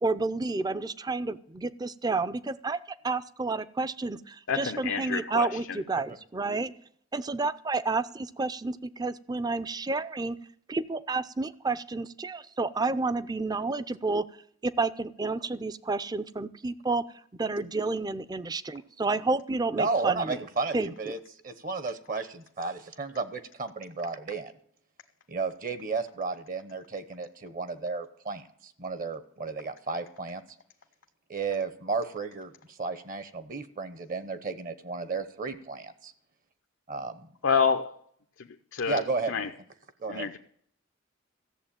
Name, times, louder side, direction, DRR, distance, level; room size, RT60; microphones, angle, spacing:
voice 1, 0.0-2.8 3.0-6.7 7.1-10.4 10.7-14.2 14.6-17.0 17.4-20.4 20.7-21.2, right 3 dB, 20° right, 15 dB, 0.5 m, -30 dB
voice 2, 4.5-5.5 37.4-37.9 38.7-39.0 39.3-39.5 40.1-40.4, left 5 dB, 85° left, 5 dB, 0.7 m, -27 dB
voice 3, 19.7-21.2 21.4-24.5 25.3-30.4 31.3-36.1 36.9-37.3 38.9-39.5 40.0-40.3, right 4 dB, 45° right, 12 dB, 0.9 m, -33 dB
14.5 x 7.3 x 8.8 m, 0.64 s
head